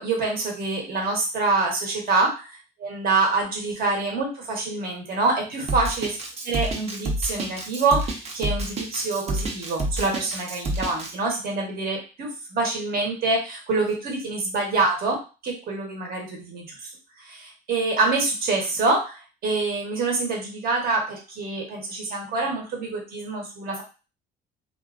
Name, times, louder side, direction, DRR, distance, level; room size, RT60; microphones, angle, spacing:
voice 1, 0.0-2.5 2.8-6.2 6.4-15.2 15.4-16.7 17.2-23.8, right 3 dB, 60° right, 0 dB, 1.1 m, -26 dB
Drum kit, 5.7-11.1, right 1 dB, 40° right, 0.7 m, -28 dB
2.6 x 2.5 x 2.4 m, 0.32 s
cardioid pair, 110°, 17 cm